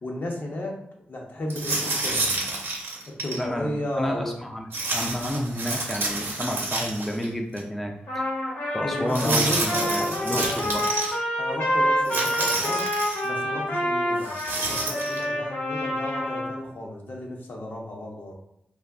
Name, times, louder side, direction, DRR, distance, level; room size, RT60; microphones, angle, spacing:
voice 1, 0.0-0.8 1.1-2.3 3.1-4.4 8.8-10.6 11.4-12.8 13.2-14.3 14.6-18.3, left 1 dB, 55° left, -1 dB, 0.8 m, -33 dB
sound 1, 1.5-3.4 4.7-7.3 7.6-7.7 9.1-11.1 12.0-13.3 14.2-15.2, right 2 dB, 80° right, 0.7 m, -29 dB
voice 2, 3.4-7.9 8.7-10.9, equal, 5° left, 1 dB, 0.4 m, -30 dB
Trumpet, 8.1-16.6, equal, 85° left, 1.1 m, -27 dB
2.4 x 2.2 x 3.5 m, 0.75 s
cardioid pair, 60°, 4 cm